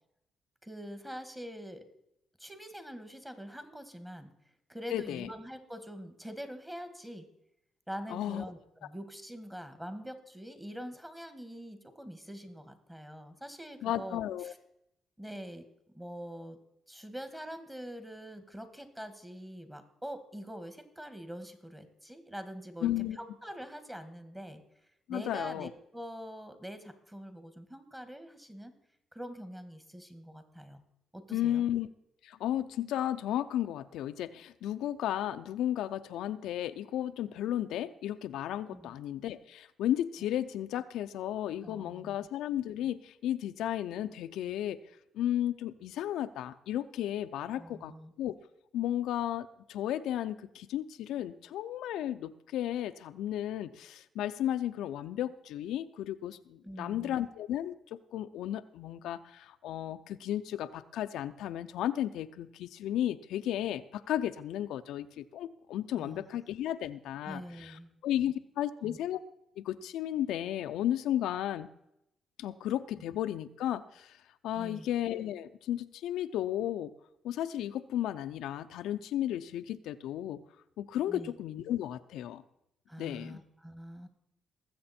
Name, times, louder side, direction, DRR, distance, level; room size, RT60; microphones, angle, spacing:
voice 1, 0.6-1.8 2.4-4.3 4.7-7.2 7.9-14.6 15.2-15.6 15.9-16.6 16.9-24.6 25.1-28.7 29.1-30.8 31.1-31.6 38.7-38.9 41.6-42.1 47.5-48.1 56.6-57.2 65.9-66.2 67.2-67.9 68.8-69.0 74.5-74.9 81.1-81.3 82.9-84.1, equal, 10° right, 9 dB, 1.7 m, -44 dB
voice 2, 4.9-5.3 8.1-8.4 13.8-14.5 22.8-23.2 25.1-25.7 31.3-31.9 32.2-44.8 45.1-47.9 48.2-48.4 48.7-69.2 69.6-71.7 72.4-74.2 74.4-76.9 77.2-80.4 80.8-82.4 83.0-83.4, left 11 dB, 85° left, 10 dB, 0.5 m, -34 dB
19.5 x 7.7 x 4.3 m, 0.81 s
cardioid pair, 90°, 0 cm